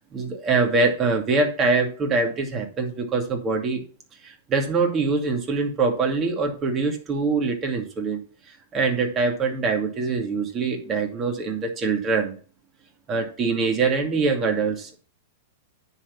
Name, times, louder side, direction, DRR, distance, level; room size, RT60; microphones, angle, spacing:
voice 1, 0.1-3.8 4.2-8.2 8.7-12.4 13.1-15.0, right 4 dB, 25° right, 3 dB, 2.4 m, -24 dB
9.7 x 4.2 x 7.2 m, 0.38 s
hypercardioid pair, 130°, 0 cm